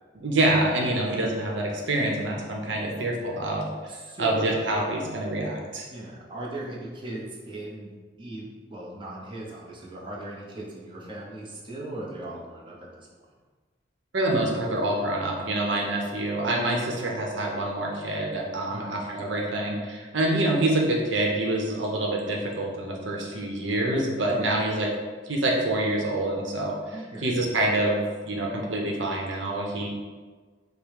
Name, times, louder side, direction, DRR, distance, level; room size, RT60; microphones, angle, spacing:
voice 1, 0.2-3.7 4.2-5.9 14.1-24.9 25.3-26.7 27.2-29.9, right 1 dB, 90° right, -1 dB, 0.8 m, -26 dB
voice 2, 3.9-4.4 5.9-13.1 14.4-14.5 18.7-18.9 24.3-24.6 26.9-27.4, right 1 dB, 30° right, -4 dB, 0.8 m, -38 dB
5.3 x 2.1 x 4.7 m, 1.4 s
head